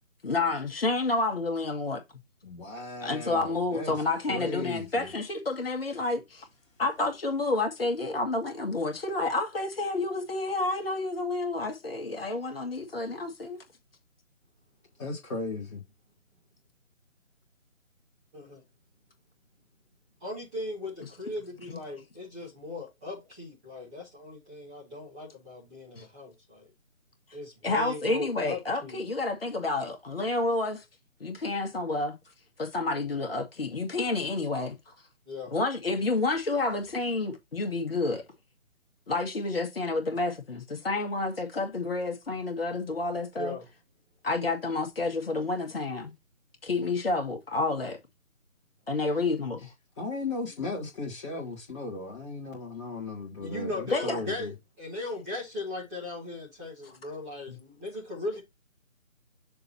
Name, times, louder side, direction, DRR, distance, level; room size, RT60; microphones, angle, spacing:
voice 1, 0.2-2.0 3.0-6.4 6.8-13.6 21.0-21.1 21.7-21.8 25.9-26.1 27.6-30.8 31.2-32.1 32.6-34.8 35.5-38.2 39.1-43.5 44.2-46.1 46.6-48.0 48.9-49.6 53.9-54.2 57.5-57.6, left 3 dB, 45° left, 1.8 m, -29 dB
voice 2, 2.4-3.9 4.3-5.1 15.0-15.8 50.0-54.5, left 3 dB, 20° left, 2.0 m, -36 dB
voice 3, 20.2-26.7 27.3-29.0 35.3-35.5 43.4-43.7 53.4-58.4, left 2 dB, 5° right, 0.9 m, -38 dB
6.7 x 2.9 x 5.5 m
figure-of-eight pair, 155°, 40 cm